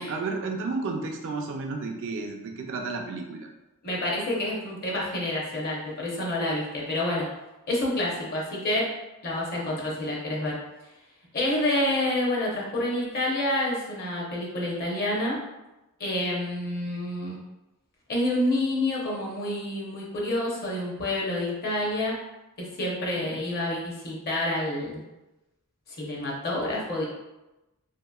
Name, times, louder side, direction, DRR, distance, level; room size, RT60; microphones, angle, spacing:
voice 1, 0.0-3.5 23.2-23.4, right 3 dB, 60° right, 2 dB, 0.4 m, -32 dB
voice 2, 3.8-7.3 7.7-8.9 9.2-10.6 11.3-15.4 16.0-17.4 18.1-22.2 22.6-25.0 25.9-27.1, left 1 dB, 45° left, -4 dB, 0.7 m, -28 dB
2.8 x 2.7 x 2.3 m, 1.0 s
head